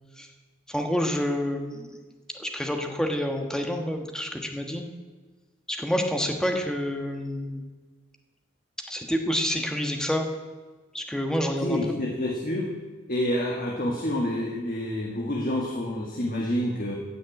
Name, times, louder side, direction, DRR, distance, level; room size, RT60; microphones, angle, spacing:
voice 1, 0.7-1.9 2.4-4.8 5.7-7.6 8.9-10.3 10.9-11.8, equal, 5° left, 3 dB, 1.2 m, -28 dB
voice 2, 11.6-12.7 13.1-17.0, left 1 dB, 45° left, -1 dB, 1.7 m, -28 dB
15.0 x 6.4 x 8.6 m, 1.3 s
head